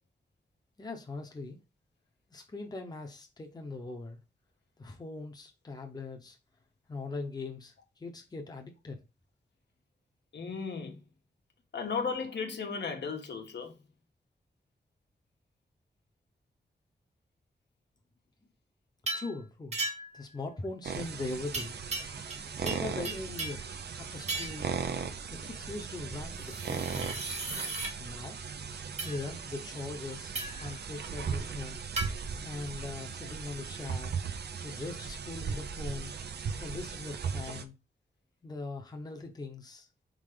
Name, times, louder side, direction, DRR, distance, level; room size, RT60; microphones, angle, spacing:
voice 1, 0.8-1.6 2.3-4.2 4.8-6.4 6.9-9.0 19.1-19.8 20.1-21.8 22.6-27.5 28.0-28.4 29.0-34.1 34.6-36.1 36.6-37.7 38.4-39.9, left 3 dB, 20° left, 0.9 m, -41 dB
voice 2, 10.3-11.0 11.7-13.8 33.2-33.3, left 5 dB, 85° left, 1.4 m, -35 dB
sound 1, 19.1-19.3 19.7-20.2 21.5-22.4 22.7-23.7 24.3-24.7 26.4-27.9 29.0-29.2 30.3-30.7 32.0-32.1, right 3 dB, 40° right, 1.3 m, -36 dB
sound 2, 20.8-37.6, right 6 dB, 70° right, 0.6 m, -38 dB
5.0 x 3.9 x 4.9 m
wide cardioid pair, 180°, 18 cm